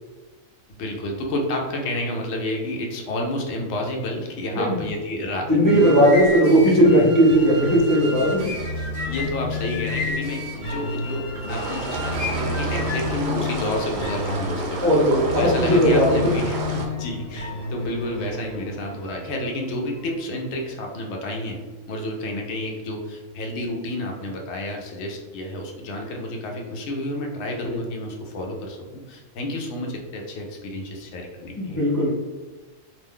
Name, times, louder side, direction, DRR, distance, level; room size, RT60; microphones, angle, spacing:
voice 1, 0.7-5.9 9.0-14.8 15.4-21.6 21.9-28.8 29.1-31.8, left 1 dB, 65° left, 1 dB, 0.8 m, -30 dB
voice 2, 5.5-8.4 14.8-16.2 27.7-27.8 31.6-32.1, equal, 25° left, -8 dB, 0.4 m, -17 dB
sound 1, 5.5-13.1, left 1 dB, 50° right, 0.8 m, -34 dB
sound 2, 7.3-20.2, left 3 dB, 90° left, 1.0 m, -31 dB
sound 3, 11.5-16.8, right 3 dB, 70° right, 0.4 m, -31 dB
2.6 x 2.2 x 3.4 m, 1.3 s
omnidirectional pair, 1.4 m